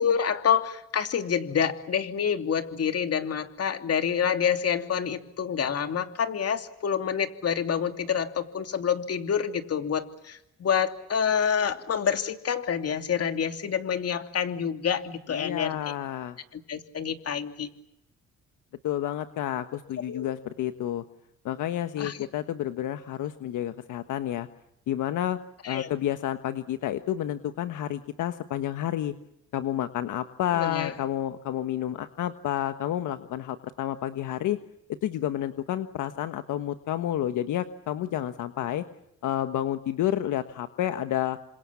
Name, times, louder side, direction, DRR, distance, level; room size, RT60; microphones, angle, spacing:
voice 1, 0.0-15.9 16.5-17.7 20.1-20.3 22.0-22.3 25.6-25.9 30.5-30.9, left 7 dB, 55° left, 8 dB, 2.9 m, -27 dB
voice 2, 15.3-16.4 18.8-21.0 21.4-24.5 24.9-25.4 25.6-29.1 29.5-34.6 35.0-38.8 39.2-41.4, left 12 dB, 80° left, 10 dB, 1.4 m, -30 dB
28.5 x 26.0 x 7.2 m, 0.81 s
cardioid pair, 90°, 30 cm